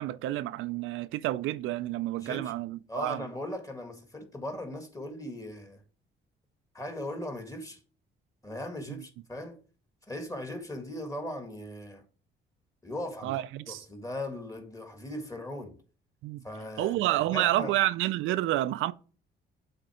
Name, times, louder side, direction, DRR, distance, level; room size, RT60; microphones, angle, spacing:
voice 1, 0.0-3.2 8.9-9.0 13.2-13.8 16.2-16.4 16.8-18.9, right 15 dB, 85° right, 0.5 m, -29 dB
voice 2, 2.2-2.5 2.9-5.8 6.7-7.8 8.4-9.6 10.1-12.0 12.8-15.8 16.4-17.7, left 1 dB, 15° left, 1.9 m, -38 dB
7.8 x 4.0 x 4.9 m
cardioid pair, 90°, 20 cm